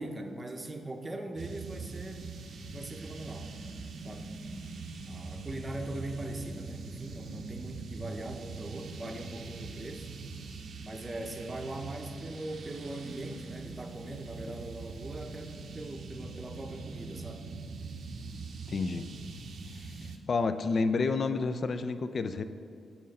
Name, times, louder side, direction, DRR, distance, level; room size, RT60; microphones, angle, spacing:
voice 1, 0.0-2.4 2.7-3.5 4.0-4.4 5.1-10.1 10.8-17.5, right 1 dB, 25° right, 4 dB, 0.7 m, -41 dB
sound 1, 1.4-20.2, right 3 dB, 65° right, 0.6 m, -43 dB
voice 2, 18.7-19.1 19.8-22.4, left 4 dB, 50° left, 10 dB, 0.4 m, -30 dB
7.6 x 4.3 x 5.5 m, 2.4 s
cardioid pair, 90°, 0 cm